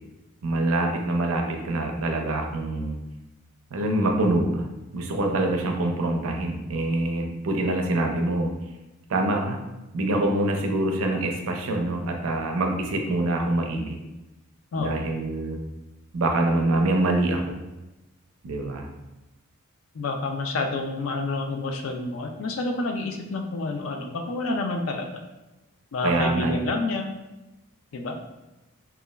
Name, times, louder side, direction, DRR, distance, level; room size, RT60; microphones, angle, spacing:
voice 1, 0.4-3.0 3.7-4.7 4.9-8.5 9.1-9.6 9.9-14.0 14.7-15.6 16.1-17.6 18.4-18.9 26.0-26.6, right 2 dB, 65° right, 3 dB, 0.4 m, -25 dB
voice 2, 14.7-15.1 19.9-25.2 25.9-27.1 27.9-28.2, left 2 dB, 60° left, 4 dB, 0.3 m, -29 dB
3.0 x 2.3 x 2.2 m, 1.0 s
head